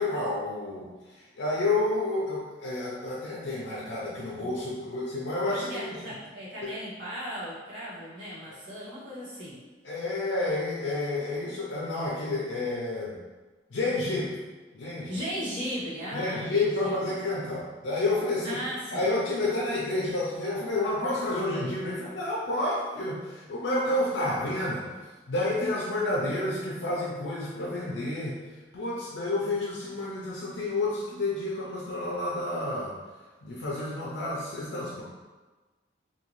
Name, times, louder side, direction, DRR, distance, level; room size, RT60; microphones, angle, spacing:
voice 1, 0.0-6.2 6.6-6.7 9.8-13.2 13.7-14.4 14.7-15.2 16.1-18.6 18.9-24.9 25.3-28.4 28.7-33.0 33.4-35.0, left 2 dB, 80° left, -5 dB, 0.5 m, -30 dB
voice 2, 5.5-9.6 15.1-17.2 18.4-19.0, equal, 80° right, -10 dB, 1.3 m, -36 dB
2.7 x 2.6 x 3.0 m, 1.3 s
head